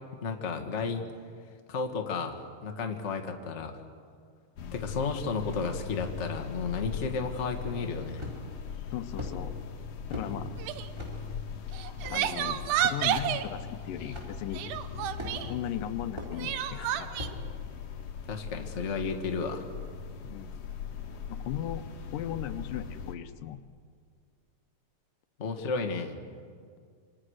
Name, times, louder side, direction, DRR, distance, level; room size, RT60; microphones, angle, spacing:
voice 1, 0.2-1.1 1.7-2.3 2.6-3.8 4.7-8.3 18.3-19.7 25.4-26.2, left 4 dB, 30° left, 4 dB, 1.4 m, -32 dB
sound 1, 4.6-23.2, left 6 dB, 55° left, 2.4 m, -40 dB
sound 2, 8.2-8.6 9.2-9.3 10.1-10.3 11.0-11.2 12.0-12.2 13.1-13.2 14.1-14.3 15.2-15.6 16.2-16.3 17.2-17.4, left 2 dB, 5° right, 5.3 m, -38 dB
voice 2, 8.9-9.5 10.1-10.6 12.1-14.6 15.5-17.2 20.2-20.6 21.3-21.8 22.1-23.6, left 11 dB, 80° left, 11 dB, 2.5 m, -37 dB
Crying sobbing, 10.6-10.9 11.7-13.5 14.5-15.5 16.4-17.3, right 11 dB, 75° right, 2.3 m, -30 dB
27.0 x 25.0 x 6.5 m, 2.1 s
omnidirectional pair, 3.8 m